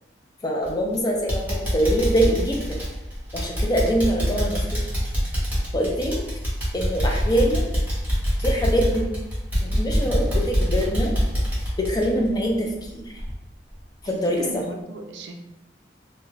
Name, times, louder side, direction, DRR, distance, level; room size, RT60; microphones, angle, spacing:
voice 1, 0.4-2.8 3.3-4.9 5.7-6.2 6.7-7.7 8.4-9.1 9.6-11.1 11.8-13.0 14.0-14.4, equal, 20° left, 0 dB, 0.4 m, -24 dB
sound 1, 0.6-0.9 1.3-12.9 13.2-13.3 13.8-13.9, equal, 10° right, 0.9 m, -25 dB
voice 2, 14.0-15.3, right 2 dB, 65° right, 4 dB, 0.4 m, -35 dB
2.3 x 2.1 x 3.1 m, 0.99 s
head